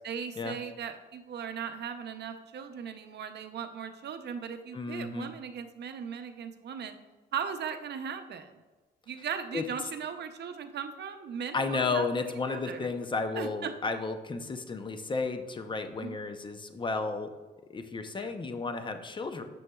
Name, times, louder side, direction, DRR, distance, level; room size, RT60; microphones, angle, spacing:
voice 1, 0.0-6.9 7.3-8.5 9.1-12.1 12.5-12.9 13.4-13.7 16.0-16.2 18.2-18.3, right 7 dB, 60° right, 8 dB, 0.6 m, -38 dB
voice 2, 4.7-5.3 9.5-9.6 11.5-17.3 17.7-19.4, left 4 dB, 25° left, 8 dB, 0.6 m, -33 dB
7.0 x 6.3 x 2.3 m, 1.2 s
cardioid pair, 90°, 20 cm